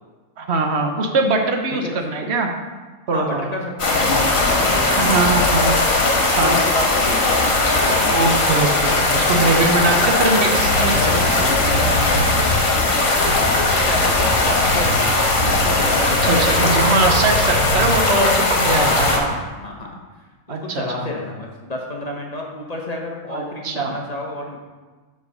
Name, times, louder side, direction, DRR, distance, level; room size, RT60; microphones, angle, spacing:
voice 1, 0.4-2.5 3.1-3.5 5.0-5.7 6.4-6.6 8.1-11.5 16.2-19.3 20.5-21.1 23.3-23.9, right 3 dB, 55° right, 3 dB, 1.0 m, -21 dB
voice 2, 3.1-5.8 6.4-8.3 9.6-10.1 10.8-11.2 11.6-16.9 18.7-20.0 20.5-24.6, left 1 dB, 35° left, -1 dB, 0.8 m, -31 dB
sound 1, 3.8-19.2, left 2 dB, 70° left, 1.7 m, -18 dB
5.8 x 4.6 x 6.4 m, 1.3 s
omnidirectional pair, 1.4 m